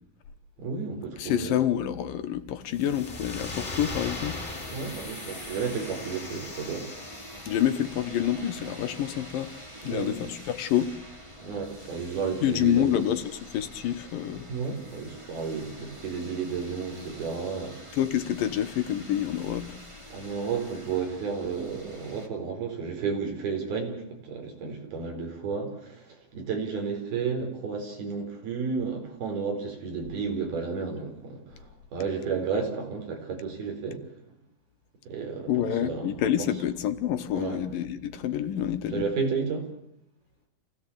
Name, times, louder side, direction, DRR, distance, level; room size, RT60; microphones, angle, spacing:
voice 1, 0.6-1.6 4.7-6.9 9.8-10.1 11.4-13.0 14.5-18.0 20.1-34.1 35.0-36.5 37.4-37.6 38.9-39.7, right 5 dB, 85° right, 6.3 m, -32 dB
voice 2, 1.2-4.5 7.5-9.5 9.8-10.9 12.4-13.2 13.5-14.5 17.9-19.8 35.5-39.1, left 10 dB, 70° left, 2.7 m, -27 dB
sound 1, 2.7-7.7, left 2 dB, 20° left, 3.4 m, -39 dB
sound 2, 3.9-22.3, equal, 10° right, 1.7 m, -46 dB
27.5 x 17.0 x 8.6 m
omnidirectional pair, 4.3 m